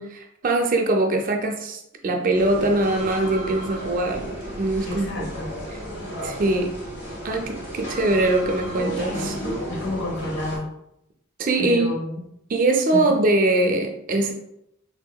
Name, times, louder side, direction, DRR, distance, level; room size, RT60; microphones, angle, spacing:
voice 1, 0.0-5.3 6.2-6.7 7.2-9.4 11.4-11.9 12.5-14.3, right 2 dB, 40° right, 3 dB, 0.4 m, -22 dB
sound 1, 2.3-10.6, equal, 55° left, 1.0 m, -33 dB
voice 2, 4.9-5.5 9.7-10.7 11.6-12.2 12.9-13.0, left 1 dB, 85° left, -3 dB, 1.2 m, -30 dB
3.6 x 2.7 x 2.2 m, 0.78 s
head